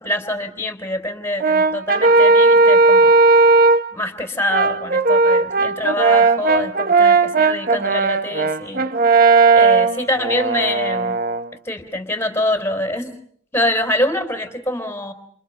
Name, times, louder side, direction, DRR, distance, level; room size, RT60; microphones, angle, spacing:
voice 1, 0.0-3.1 3.9-8.9 9.5-11.2 11.7-13.2 13.5-15.1, left 1 dB, 15° left, 8 dB, 3.7 m, -25 dB
Brass instrument, 1.4-3.9 4.5-11.5, right 3 dB, 45° right, 1.0 m, -15 dB
30.0 x 29.5 x 5.5 m, 0.62 s
head